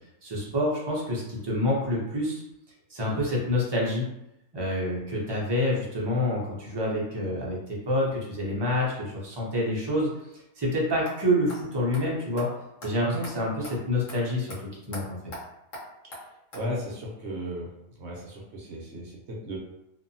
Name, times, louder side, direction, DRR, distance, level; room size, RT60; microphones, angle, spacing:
voice 1, 0.2-2.4 2.9-4.1 4.5-10.1 10.6-12.5 12.8-14.5 14.9-15.2, left 1 dB, 40° right, -4 dB, 0.3 m, -27 dB
sound 1, 11.1-11.2 11.5-11.6 11.9-12.0 12.4-12.5 12.8-12.9 13.2-13.3 13.6-13.8 14.1-14.2 14.5-14.6 14.9-15.0 15.3-15.4 15.7-15.8 16.1-16.2 16.5-16.6, left 1 dB, 65° left, 1.3 m, -40 dB
voice 2, 16.5-19.6, equal, 60° right, -3 dB, 0.8 m, -35 dB
2.6 x 2.6 x 2.6 m, 0.83 s
omnidirectional pair, 1.5 m